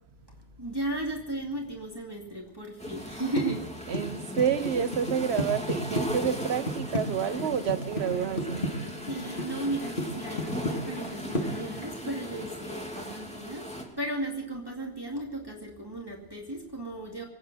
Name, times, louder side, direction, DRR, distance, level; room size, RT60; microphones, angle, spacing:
voice 1, 0.2-4.0 9.0-13.7 14.0-17.2, right 1 dB, 20° right, 2.3 m, -35 dB
sound 1, 2.8-13.8, equal, 5° left, 2.5 m, -38 dB
sound 2, 3.4-7.0 7.4-8.1 8.4-9.5 9.7-10.1 10.4-11.1 11.3-11.4, left 1 dB, 50° left, 2.4 m, -30 dB
voice 2, 3.9-8.7, right 7 dB, 75° right, 1.1 m, -29 dB
sound 3, 6.7-11.9, left 1 dB, 75° left, 3.7 m, -44 dB
23.5 x 9.4 x 6.1 m
omnidirectional pair, 1.1 m